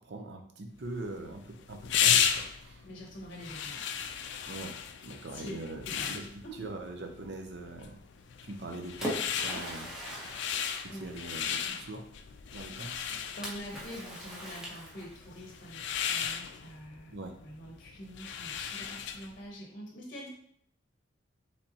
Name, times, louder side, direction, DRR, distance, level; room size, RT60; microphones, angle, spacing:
voice 1, 0.0-2.8 4.5-4.8 5.0-6.2 6.6-8.0 8.4-10.0 10.8-12.1 12.5-12.9 17.1-17.3, right 2 dB, 60° right, 3 dB, 0.7 m, -42 dB
sound 1, 0.9-19.4, left 8 dB, 65° left, 0.4 m, -35 dB
voice 2, 2.8-3.8 5.3-5.5 5.8-6.2 6.4-6.7 10.8-11.1 12.9-17.2 17.4-20.3, equal, 45° left, -1 dB, 0.9 m, -45 dB
Splash splatter, 8.4-11.6 13.4-15.4, equal, 5° right, 0.9 m, -41 dB
5.4 x 3.3 x 2.8 m, 0.67 s
head